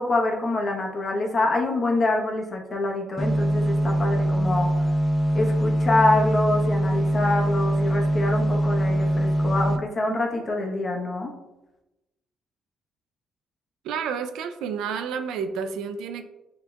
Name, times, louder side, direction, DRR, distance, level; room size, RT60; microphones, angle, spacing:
voice 1, 0.0-4.7 5.3-11.3, left 2 dB, 40° left, 1 dB, 0.9 m, -25 dB
sound 1, 3.2-9.8, right 1 dB, 10° left, 0.6 m, -23 dB
voice 2, 13.8-16.3, right 6 dB, 90° right, 8 dB, 0.3 m, -30 dB
6.4 x 2.9 x 2.2 m, 1.0 s
cardioid pair, 90°, 0 cm